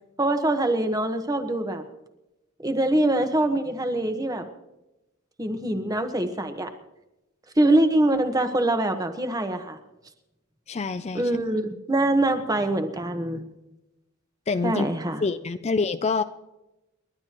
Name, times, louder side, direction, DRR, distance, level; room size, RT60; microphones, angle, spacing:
voice 1, 0.2-1.8 2.6-4.5 5.4-6.7 7.6-9.8 11.1-13.4 14.6-15.2, right 1 dB, 20° right, 7 dB, 1.3 m, -24 dB
voice 2, 10.7-11.3 14.5-14.9 15.2-16.2, left 4 dB, 30° left, 11 dB, 0.4 m, -26 dB
29.5 x 12.0 x 3.0 m, 0.95 s
head